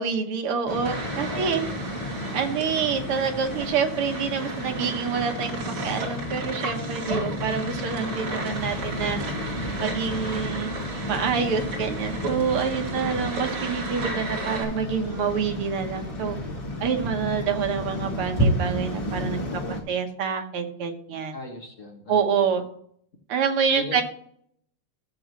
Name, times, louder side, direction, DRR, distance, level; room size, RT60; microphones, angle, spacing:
voice 1, 0.0-1.6 2.3-9.2 9.8-10.7 11.1-16.4 16.8-21.3 22.1-22.6 23.3-24.0, right 6 dB, 85° right, 5 dB, 2.1 m, -27 dB
Waves surf, 0.7-19.8, left 1 dB, 20° left, 1.3 m, -33 dB
sound 1, 0.9-14.6, right 3 dB, 60° right, 3.6 m, -35 dB
voice 2, 8.3-8.7 12.9-13.4 19.2-19.9 21.3-22.6 23.7-24.0, left 2 dB, 40° left, 1 dB, 1.9 m, -39 dB
sound 2, 8.6-19.3, right 1 dB, 10° right, 3.8 m, -34 dB
14.0 x 7.4 x 3.1 m, 0.64 s
omnidirectional pair, 2.4 m